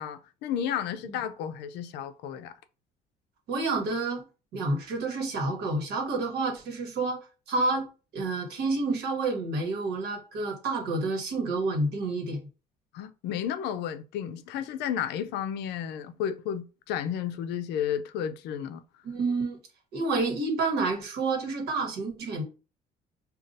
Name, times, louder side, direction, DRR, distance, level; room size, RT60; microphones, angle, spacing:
voice 1, 0.0-2.5 12.9-18.8, left 9 dB, 85° left, 0.5 m, -32 dB
voice 2, 3.5-4.2 4.5-7.9 8.1-12.4 19.0-19.6 19.9-22.4, right 3 dB, 75° right, 1.2 m, -29 dB
5.1 x 2.4 x 2.6 m
cardioid pair, 110°, 17 cm